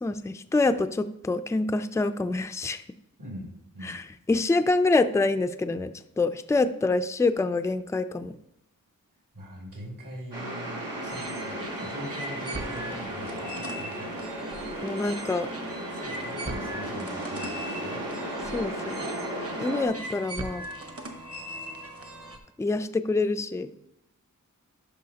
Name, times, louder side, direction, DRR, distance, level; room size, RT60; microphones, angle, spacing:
voice 1, 0.0-2.8 3.8-4.0 4.3-5.9 6.2-8.3 14.8-15.5 18.5-19.0 19.6-20.6 22.6-23.7, left 3 dB, 10° left, 10 dB, 0.4 m, -26 dB
voice 2, 3.2-4.0 9.3-14.1 15.9-18.1, equal, 70° right, -3 dB, 2.8 m, -42 dB
sound 1, 10.3-19.9, right 1 dB, 90° right, 2.3 m, -35 dB
sound 2, 11.1-22.4, right 1 dB, 45° right, 1.2 m, -40 dB
10.5 x 5.7 x 2.8 m, 0.80 s
cardioid pair, 55°, 33 cm